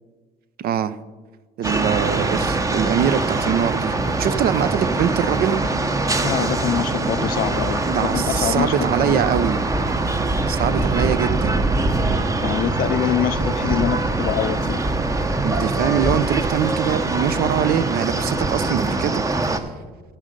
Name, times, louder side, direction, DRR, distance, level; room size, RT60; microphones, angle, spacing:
voice 1, 0.6-1.0 1.6-5.6 7.0-7.1 7.8-9.6 10.5-11.6 15.4-19.2, right 9 dB, 65° right, 0.6 m, -23 dB
sound 1, 1.6-19.6, right 2 dB, 20° right, 0.8 m, -23 dB
voice 2, 6.0-9.2 12.4-14.8, left 12 dB, 60° left, 0.4 m, -25 dB
14.5 x 6.5 x 5.1 m
cardioid pair, 110°, 17 cm